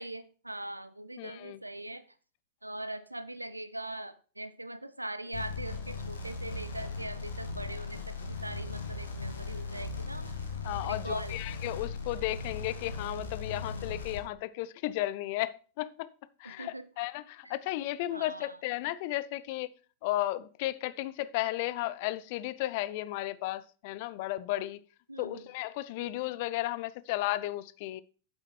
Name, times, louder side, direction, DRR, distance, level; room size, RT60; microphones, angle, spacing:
voice 1, 0.0-2.0 2.6-10.3 10.8-11.4 16.4-16.8 17.4-17.6 18.1-18.6 25.1-25.5 26.0-26.2, right 1 dB, 85° right, 0.6 m, -41 dB
voice 2, 1.2-1.6 10.6-16.1 16.4-19.7 20.0-24.8 25.2-28.0, left 16 dB, 50° left, 0.5 m, -34 dB
sound 1, 5.3-14.2, left 4 dB, 70° left, 1.7 m, -38 dB
8.8 x 7.8 x 4.5 m
figure-of-eight pair, 90°, 0 cm